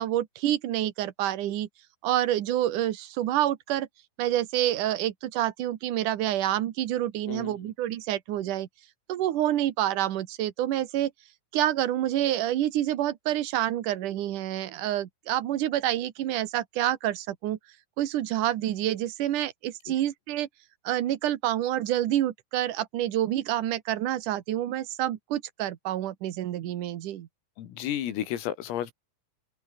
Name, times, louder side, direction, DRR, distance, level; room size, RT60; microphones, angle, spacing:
voice 1, 0.0-1.7 2.0-3.9 4.2-8.7 9.1-11.1 11.5-17.6 18.0-20.5 20.8-27.3, right 13 dB, 85° right, 1.8 m, -28 dB
voice 2, 7.3-7.7 27.6-28.9, left 11 dB, 85° left, 5.2 m, -32 dB
omnidirectional pair, 5.8 m